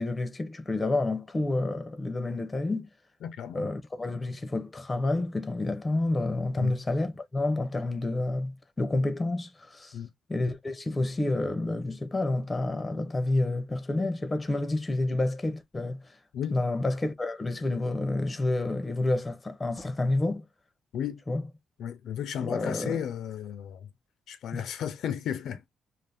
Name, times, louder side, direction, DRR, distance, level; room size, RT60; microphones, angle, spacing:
voice 1, 0.0-2.9 3.5-9.9 10.3-16.0 16.5-20.4 21.3-21.4 22.4-23.0 24.5-24.6, left 2 dB, 15° left, 0.5 m, -29 dB
voice 2, 3.2-3.7 6.6-6.7 9.9-10.1 16.3-16.6 20.9-21.2 21.8-23.9 24.3-25.6, left 9 dB, 80° left, 0.4 m, -34 dB
2.4 x 2.4 x 3.3 m
cardioid pair, 145°, 0 cm